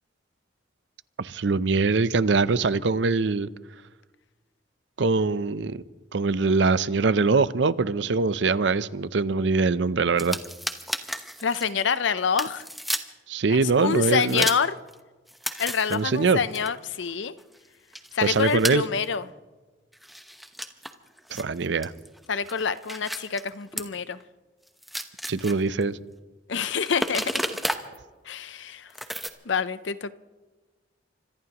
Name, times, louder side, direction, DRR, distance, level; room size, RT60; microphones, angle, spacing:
voice 1, 1.2-3.5 5.0-5.8 6.1-10.4 13.3-14.5 15.9-16.4 18.2-18.8 21.3-21.9 25.3-26.0, right 4 dB, 70° right, 0.6 m, -23 dB
sound 1, 10.2-12.0 12.4-13.0 13.7-14.9 15.3-17.7 17.9-18.7 19.0-19.2 19.9-24.0 24.2-24.3 24.7-25.8 26.5-28.0 28.9-29.3, equal, ahead, 0.8 m, -33 dB
voice 2, 11.4-12.6 13.5-14.7 15.6-17.3 18.1-19.2 22.3-24.2 26.5-27.4 28.3-28.9 29.5-30.1, left 6 dB, 75° left, 0.6 m, -27 dB
25.5 x 19.0 x 3.0 m
head